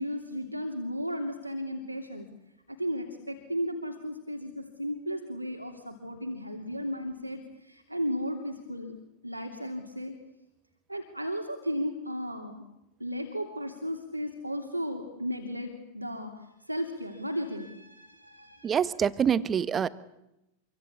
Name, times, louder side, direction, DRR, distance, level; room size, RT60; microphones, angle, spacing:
voice 1, 0.0-2.3 2.7-8.9 9.2-10.1 10.9-12.6 13.0-16.3 16.6-18.8, equal, 85° right, 4 dB, 2.9 m, -35 dB
voice 2, 18.6-19.9, right 8 dB, 25° right, 16 dB, 1.3 m, -25 dB
27.0 x 24.0 x 8.5 m, 0.87 s
figure-of-eight pair, 90°, 0 cm